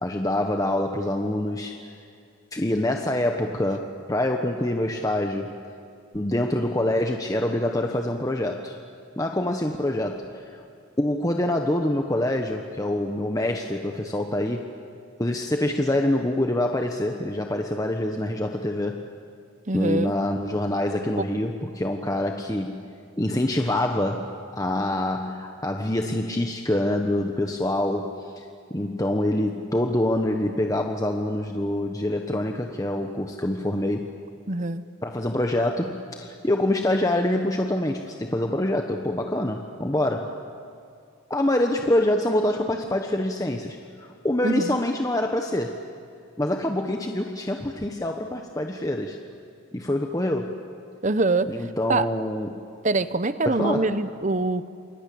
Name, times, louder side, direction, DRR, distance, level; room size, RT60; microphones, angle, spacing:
voice 1, 0.0-1.9 2.5-5.6 6.1-8.8 9.2-10.6 11.0-14.7 15.2-19.1 19.7-22.8 23.2-34.1 35.0-40.3 41.3-45.8 46.4-49.2 49.7-50.6 51.5-52.6 53.4-53.9, left 1 dB, 15° left, 3 dB, 1.1 m, -25 dB
voice 2, 19.7-20.1 21.2-21.3 34.5-34.8 44.4-44.8 51.0-51.5 51.9-52.1 52.8-54.7, right 2 dB, 35° right, 13 dB, 0.9 m, -24 dB
28.5 x 23.0 x 8.6 m, 2.4 s
head